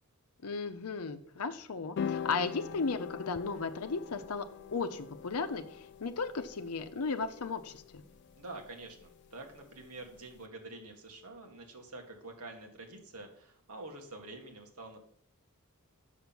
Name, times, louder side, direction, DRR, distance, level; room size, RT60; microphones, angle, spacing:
voice 1, 0.4-4.5 4.7-8.0, left 4 dB, 80° left, 8 dB, 0.7 m, -35 dB
sound 1, 2.0-10.4, left 7 dB, 50° left, 0.3 m, -43 dB
voice 2, 8.4-15.0, right 2 dB, 80° right, 3 dB, 1.9 m, -47 dB
6.5 x 5.9 x 7.0 m, 0.63 s
head